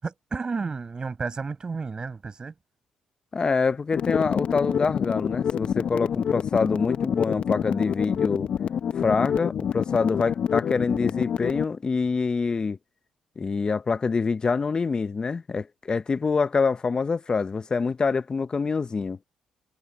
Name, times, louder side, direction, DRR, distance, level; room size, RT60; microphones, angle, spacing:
voice 1, 0.0-2.5, right 4 dB, 35° right, 6.9 m, -32 dB
voice 2, 3.3-8.5 9.0-12.8 13.4-19.2, left 4 dB, 35° left, 1.0 m, -25 dB
sound 1, 3.9-11.6, left 8 dB, 60° left, 1.2 m, -27 dB
supercardioid pair, 60°, 2 cm